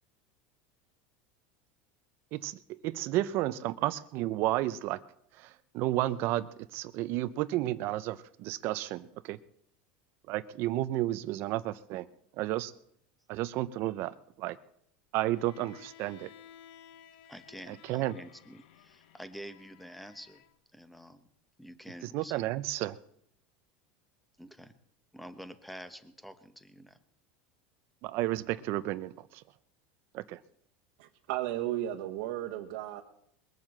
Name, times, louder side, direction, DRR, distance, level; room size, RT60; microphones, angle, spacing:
voice 1, 2.3-5.0 5.4-9.4 10.3-12.1 12.4-12.7 13.3-14.6 15.1-16.3 17.7-18.2 22.1-23.0 28.0-29.4 30.1-30.4, right 15 dB, 50° right, 14 dB, 0.5 m, -32 dB
Bowed string instrument, 15.3-20.5, left 9 dB, 85° left, 1.1 m, -55 dB
voice 2, 17.3-20.4 20.7-21.3 21.6-22.5 24.4-24.7 25.1-27.0, equal, ahead, 11 dB, 0.9 m, -48 dB
voice 3, 31.0-33.0, right 13 dB, 70° right, 1 dB, 1.2 m, -34 dB
21.0 x 7.3 x 7.7 m, 0.72 s
supercardioid pair, 150°, 5 cm